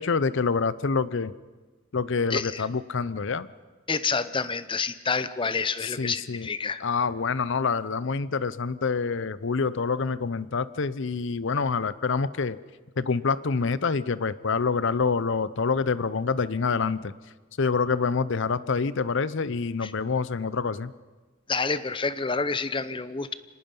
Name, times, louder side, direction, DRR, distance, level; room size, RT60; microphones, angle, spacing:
voice 1, 0.0-1.3 1.9-3.5 5.8-6.5 6.8-12.6 13.0-17.1 17.6-20.9, left 4 dB, 60° left, 17 dB, 0.7 m, -26 dB
voice 2, 2.3-2.7 3.9-6.8 19.8-19.9 21.5-23.3, left 4 dB, 25° left, 14 dB, 0.7 m, -28 dB
25.5 x 19.5 x 5.5 m, 1.3 s
head